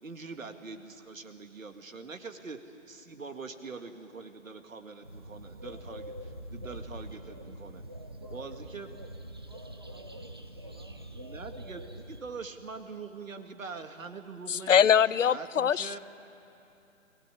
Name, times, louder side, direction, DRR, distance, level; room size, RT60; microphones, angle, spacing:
voice 1, 0.0-2.6 2.9-7.8 8.3-8.9 11.1-15.0 15.3-16.0, right 4 dB, 75° right, 2.1 m, -43 dB
sound 1, 5.0-12.2, right 1 dB, 20° right, 0.5 m, -44 dB
voice 2, 8.2-9.2 9.5-11.1, right 2 dB, 40° right, 2.8 m, -57 dB
voice 3, 14.5-16.0, left 8 dB, 70° left, 0.6 m, -23 dB
22.5 x 18.0 x 9.9 m
figure-of-eight pair, 155°, 40 cm